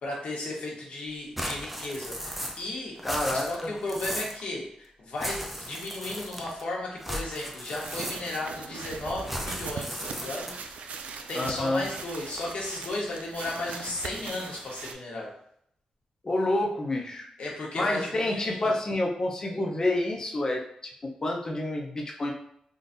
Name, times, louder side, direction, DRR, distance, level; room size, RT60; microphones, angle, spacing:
voice 1, 0.0-3.0 3.5-10.8 11.3-15.3 17.4-18.7, left 2 dB, 70° left, -2 dB, 1.0 m, -35 dB
sound 1, 1.4-2.7 3.0-4.4 5.2-6.6 7.0-8.5 9.2-10.7, equal, 5° right, 0.5 m, -36 dB
voice 2, 3.0-3.7 11.3-11.8 16.2-17.3 17.7-20.6 21.2-22.3, left 2 dB, 30° left, 0 dB, 0.7 m, -28 dB
sound 2, 7.8-14.9, right 5 dB, 85° right, 0.3 m, -40 dB
3.8 x 2.6 x 2.6 m, 0.70 s
wide cardioid pair, 120°, 2 cm